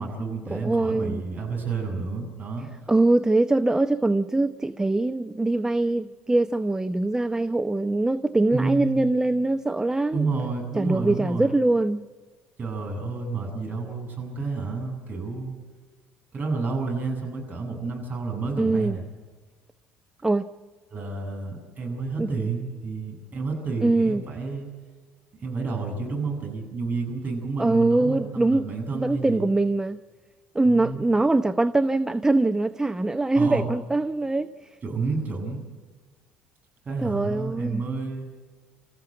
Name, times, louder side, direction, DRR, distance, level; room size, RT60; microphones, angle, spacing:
voice 1, 0.0-2.7 8.5-9.0 10.1-11.5 12.6-15.6 16.3-19.0 20.9-24.7 25.4-29.5 30.6-31.0 33.3-33.7 34.8-35.6 36.8-38.3, right 4 dB, 35° right, 2 dB, 7.9 m, -30 dB
voice 2, 0.5-1.2 2.9-10.3 10.7-12.1 18.6-19.0 20.2-20.5 22.2-22.5 23.8-24.2 27.6-28.7 28.9-30.0 30.5-34.5 37.0-37.8, right 2 dB, 10° right, 11 dB, 0.8 m, -23 dB
27.0 x 14.5 x 9.1 m, 1.4 s
hypercardioid pair, 60°, 5 cm